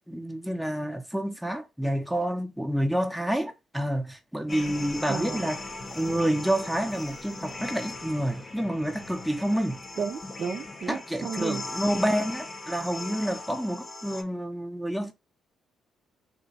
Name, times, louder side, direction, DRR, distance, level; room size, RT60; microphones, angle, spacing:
voice 1, 0.1-5.6 5.9-9.8 10.9-15.1, equal, ahead, 0.6 m, -28 dB
sound 1, 4.5-14.2, left 3 dB, 35° left, 0.8 m, -39 dB
voice 2, 5.1-5.5 10.0-11.6, right 6 dB, 55° right, 0.5 m, -33 dB
2.9 x 2.2 x 4.0 m
cardioid pair, 90°, 0 cm